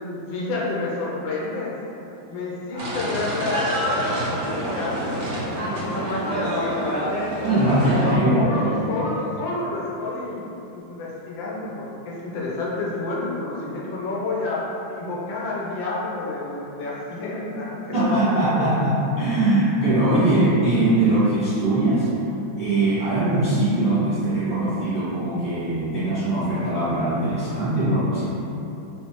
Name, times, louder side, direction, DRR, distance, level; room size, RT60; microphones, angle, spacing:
voice 1, 0.0-1.7 2.3-5.1 5.4-7.0 8.3-18.5, left 2 dB, 80° left, -5 dB, 1.3 m, -29 dB
sound 1, 2.8-8.2, equal, 60° right, 0.8 m, -27 dB
voice 2, 7.4-8.8 17.9-22.1 22.6-28.2, right 1 dB, 5° right, -13 dB, 0.7 m, -21 dB
3.2 x 3.1 x 2.9 m, 2.9 s
omnidirectional pair, 2.1 m